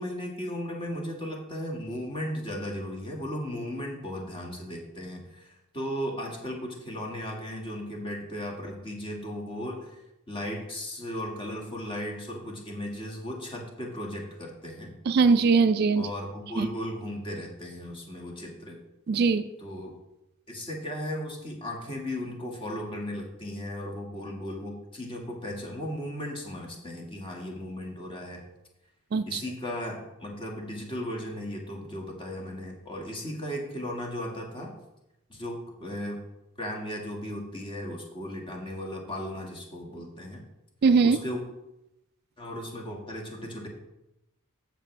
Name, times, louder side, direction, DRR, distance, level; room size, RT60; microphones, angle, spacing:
voice 1, 0.0-10.0 10.3-14.9 16.0-18.8 19.6-19.9 20.5-28.4 29.3-34.7 35.3-36.2 36.6-40.4 41.0-41.4 42.4-43.7, equal, 25° left, 0 dB, 1.8 m, -36 dB
voice 2, 15.1-16.1 16.6-16.7 19.1-19.5 29.1-29.4 40.8-41.2, right 4 dB, 45° right, 12 dB, 0.3 m, -21 dB
14.0 x 5.9 x 3.3 m, 0.91 s
head